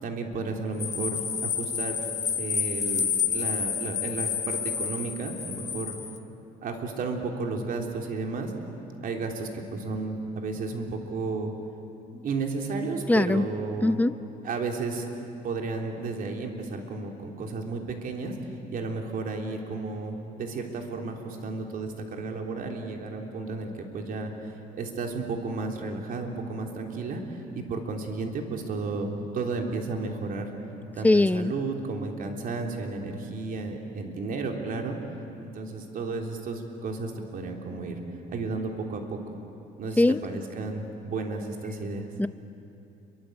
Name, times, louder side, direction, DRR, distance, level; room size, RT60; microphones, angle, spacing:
voice 1, 0.0-2.0 2.3-5.9 6.6-8.5 9.0-11.5 12.2-14.0 14.4-15.1 15.4-18.4 18.7-24.3 24.8-27.2 27.5-30.5 31.0-35.0 35.4-38.0 38.3-39.2 39.8-42.1, right 3 dB, 55° right, 2 dB, 3.4 m, -33 dB
sound 1, 0.8-6.2, left 7 dB, 45° left, 1.7 m, -29 dB
voice 2, 13.1-13.5 13.8-14.1 31.0-31.5 40.0-40.2 42.2-42.3, left 2 dB, 10° left, 13 dB, 0.7 m, -21 dB
28.5 x 23.5 x 8.0 m, 2.7 s
cardioid pair, 110°, 17 cm